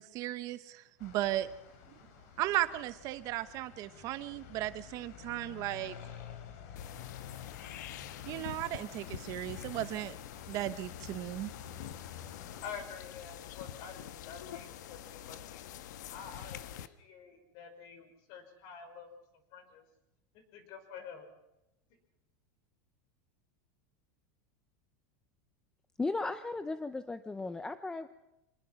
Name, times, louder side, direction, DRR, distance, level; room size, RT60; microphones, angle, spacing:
voice 1, 0.0-1.5 2.4-6.0 8.3-10.1 10.5-11.5, right 15 dB, 40° right, 13 dB, 1.0 m, -36 dB
sound 1, 1.0-12.6, left 8 dB, 60° left, 3.4 m, -50 dB
sound 2, 6.8-16.9, left 11 dB, 85° left, 1.3 m, -46 dB
voice 2, 12.6-15.6 16.1-19.1 19.5-19.8 20.5-21.3, left 6 dB, 45° left, 8 dB, 5.5 m, -48 dB
voice 3, 26.0-28.1, left 3 dB, 10° left, 11 dB, 0.7 m, -36 dB
26.5 x 20.5 x 5.9 m, 0.91 s
supercardioid pair, 165°, 9 cm